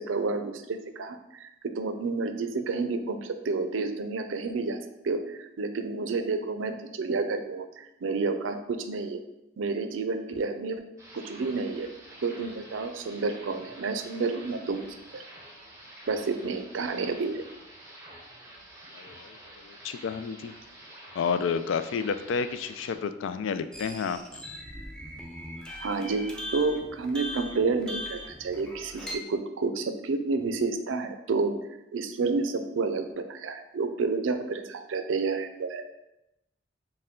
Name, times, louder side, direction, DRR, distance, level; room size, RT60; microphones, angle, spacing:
voice 1, 0.0-4.8 5.0-9.2 9.6-10.8 11.1-11.9 12.2-14.8 15.1-15.2 16.1-17.4 25.8-26.3 26.5-31.6 31.9-35.8, right 4 dB, 90° right, 8 dB, 0.5 m, -30 dB
sound 1, 11.0-23.0, right 1 dB, 15° right, 0.7 m, -49 dB
voice 2, 18.9-19.4 19.6-20.5 21.1-24.2, left 6 dB, 80° left, 10 dB, 0.3 m, -30 dB
sound 2, 23.7-29.2, left 1 dB, 5° left, 0.4 m, -40 dB
6.5 x 2.2 x 3.6 m, 0.91 s
head